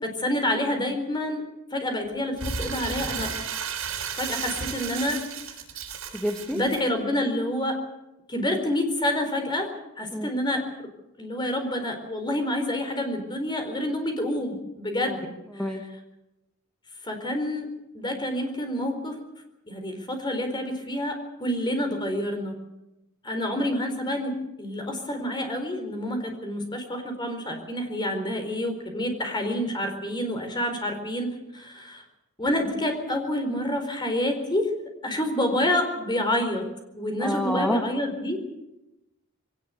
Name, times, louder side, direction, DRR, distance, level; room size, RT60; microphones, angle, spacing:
voice 1, 0.0-1.4 1.7-3.3 4.1-5.2 6.5-7.8 8.3-9.7 10.0-10.9 11.2-15.3 17.0-17.7 17.9-19.2 19.7-22.5 23.2-24.3 24.6-32.0 32.4-34.7 35.0-36.7 36.9-38.4, left 1 dB, 20° left, 5 dB, 4.5 m, -28 dB
Crumpling crinkling, 2.4-6.8, right 6 dB, 75° right, 5.1 m, -33 dB
voice 2, 6.1-6.6 10.1-10.3 15.1-15.2 15.5-15.8 37.2-37.8, equal, 5° left, 2 dB, 1.6 m, -28 dB
22.5 x 18.5 x 8.3 m, 0.95 s
head